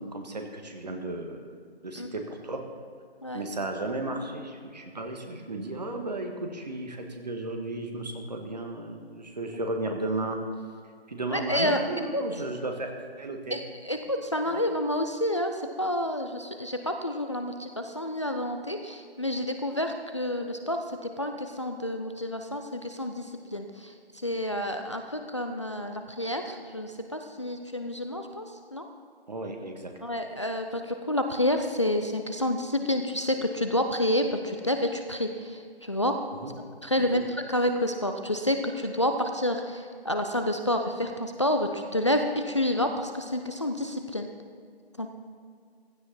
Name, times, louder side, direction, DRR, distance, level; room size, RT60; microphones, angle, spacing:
voice 1, 0.0-1.5 1.8-2.6 3.3-10.4 11.1-12.9 13.2-13.6 14.5-14.6 29.3-29.9 36.4-36.5 37.0-37.2, right 2 dB, 40° right, 4 dB, 1.7 m, -34 dB
voice 2, 11.3-11.8 12.1-12.2 13.5-28.9 30.0-36.1 36.8-44.3 45.0-45.1, left 1 dB, 30° left, 5 dB, 0.6 m, -29 dB
15.5 x 13.0 x 4.2 m, 2.1 s
figure-of-eight pair, 155°, 31 cm